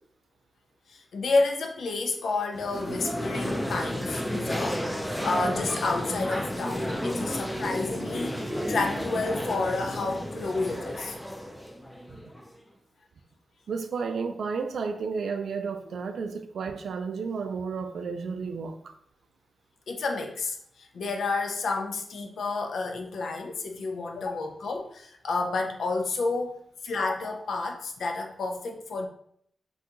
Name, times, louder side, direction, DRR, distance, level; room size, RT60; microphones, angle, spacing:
voice 1, 0.9-5.0 5.2-11.2 19.9-29.1, left 3 dB, 85° left, 0.4 m, -30 dB
sound 1, 2.5-12.6, equal, 5° left, 0.4 m, -32 dB
voice 2, 13.7-18.9, right 5 dB, 85° right, 0.3 m, -32 dB
2.7 x 2.3 x 3.7 m
wide cardioid pair, 85°, 0 cm